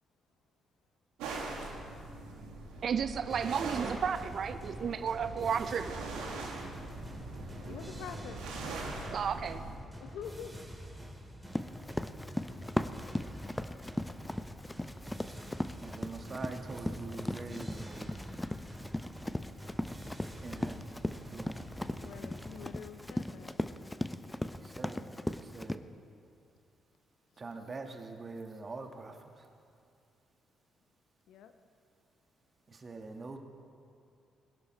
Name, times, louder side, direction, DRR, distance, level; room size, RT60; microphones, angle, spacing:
sound 1, 1.2-9.8, right 3 dB, 80° right, 1.9 m, -42 dB
voice 1, 2.8-6.0 9.1-9.6, right 7 dB, 60° right, 11 dB, 0.5 m, -33 dB
sound 2, 3.3-22.6, equal, 5° right, 3.2 m, -47 dB
voice 2, 7.7-8.4 10.0-10.5 22.0-23.6 31.3-31.5, left 8 dB, 75° left, 8 dB, 0.8 m, -45 dB
Run, 11.5-25.8, left 1 dB, 10° left, 0.6 m, -38 dB
voice 3, 15.8-18.1 20.4-20.8 21.1-21.6 24.6-25.0 25.3-25.8 27.4-29.1 32.7-33.4, right 3 dB, 40° right, 4 dB, 1.6 m, -44 dB
21.5 x 11.0 x 3.2 m, 2.4 s
hypercardioid pair, 45°, 0 cm